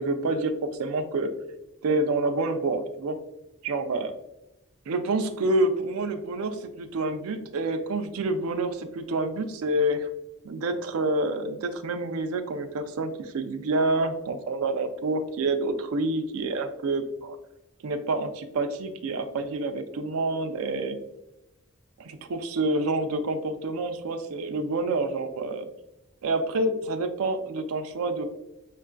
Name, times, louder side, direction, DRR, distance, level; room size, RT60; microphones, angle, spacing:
voice 1, 0.0-1.3 1.8-3.2 3.6-4.2 4.9-10.1 10.4-17.4 17.8-21.0 22.0-25.7 26.2-28.4, right 2 dB, 75° right, 6 dB, 0.4 m, -28 dB
5.3 x 2.4 x 2.2 m, 0.93 s
head